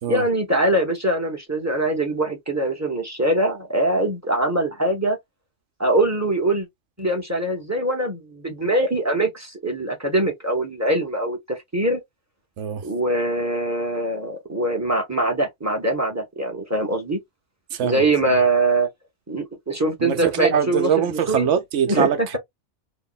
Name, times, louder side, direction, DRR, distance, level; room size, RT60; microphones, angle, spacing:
voice 1, 0.1-5.2 5.8-6.7 7.0-12.0 12.8-17.2 17.8-18.9 19.3-20.9 21.3-21.5 21.9-22.1, right 1 dB, 15° right, 1.0 m, -22 dB
voice 2, 12.6-12.9 17.7-18.3 20.0-22.4, right 8 dB, 85° right, 1.1 m, -23 dB
3.0 x 2.2 x 4.0 m
omnidirectional pair, 1.2 m